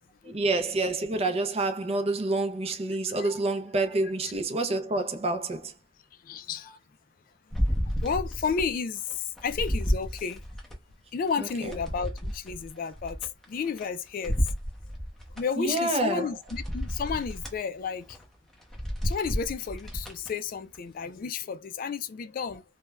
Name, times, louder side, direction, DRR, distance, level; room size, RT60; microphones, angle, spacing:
voice 1, 0.2-5.7 11.4-11.7 15.6-16.3, right 2 dB, 35° right, 0.5 m, -28 dB
voice 2, 6.2-6.8 7.8-10.4 11.1-14.4 15.3-18.2 19.0-22.6, left 6 dB, 50° left, 0.3 m, -32 dB
sound 1, 7.5-8.7 9.1-10.8 11.3-13.9 14.2-15.4 16.0-16.1 16.5-17.6 18.0-18.2 18.6-20.3 20.7-20.8, equal, ahead, 0.7 m, -31 dB
3.2 x 2.2 x 2.2 m
head